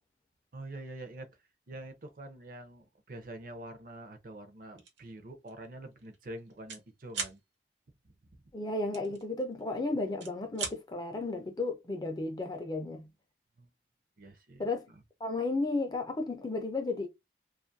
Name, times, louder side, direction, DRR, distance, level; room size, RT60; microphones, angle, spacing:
voice 1, 0.5-1.3 1.7-7.4 13.6-13.7 14.2-15.0, right 1 dB, 50° right, 0.5 m, -46 dB
sound 1, 4.8-5.0 5.5-5.7 5.9-6.8 7.1-7.4 8.9-9.7 10.1-10.8, right 5 dB, 75° right, 0.8 m, -38 dB
voice 2, 8.5-13.1 14.6-14.9 15.2-17.1, left 2 dB, 20° left, 0.4 m, -33 dB
2.5 x 2.4 x 2.6 m
head